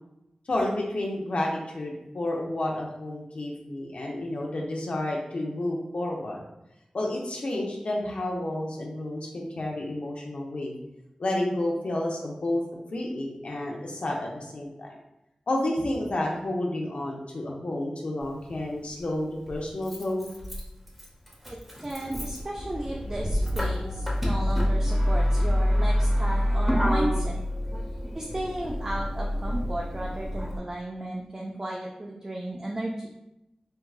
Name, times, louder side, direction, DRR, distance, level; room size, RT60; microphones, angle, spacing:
voice 1, 0.5-6.4 6.9-10.7 11.2-12.6 12.9-15.0 15.5-20.3, left 1 dB, 65° left, -1 dB, 0.6 m, -30 dB
Motor vehicle (road), 18.2-18.3 19.5-30.6, equal, 5° right, 0.8 m, -27 dB
voice 2, 21.8-27.4 28.1-33.1, right 1 dB, 30° right, -2 dB, 0.4 m, -34 dB
4.4 x 2.2 x 2.3 m, 0.90 s
wide cardioid pair, 80°, 2 cm